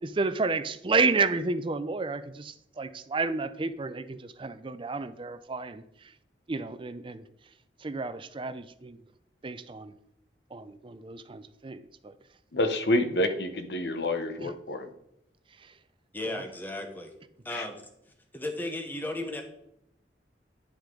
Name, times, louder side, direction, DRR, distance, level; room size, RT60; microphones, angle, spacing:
voice 1, 0.0-6.1 6.5-7.3 7.8-9.0 9.4-9.9 10.5-12.2 14.4-14.5 15.5-15.8 16.2-16.4, right 3 dB, 30° right, 12 dB, 0.5 m, -31 dB
voice 2, 12.5-14.9 17.5-17.7, left 1 dB, 65° left, 7 dB, 0.9 m, -28 dB
voice 3, 16.1-17.1 17.4-17.9 18.3-19.4, left 1 dB, 10° left, 4 dB, 1.0 m, -35 dB
10.0 x 6.2 x 3.8 m, 0.78 s
head